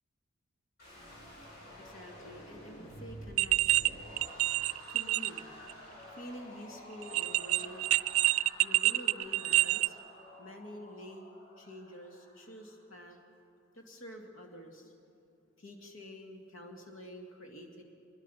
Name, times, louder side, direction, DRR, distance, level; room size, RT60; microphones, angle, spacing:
sound 1, 0.8-12.8, equal, 50° left, 7.4 m, -50 dB
voice 1, 1.1-3.8 4.5-4.6 4.9-5.6 6.1-7.9 8.6-10.0 10.4-11.3 11.6-13.2 13.7-14.9 15.6-17.8, left 1 dB, 70° left, 2 dB, 2.2 m, -48 dB
sound 2, 3.4-3.9 4.2-5.4 5.7-5.8 7.0-9.9, right 17 dB, 90° right, 0.4 m, -27 dB
25.5 x 20.5 x 5.7 m, 2.8 s
head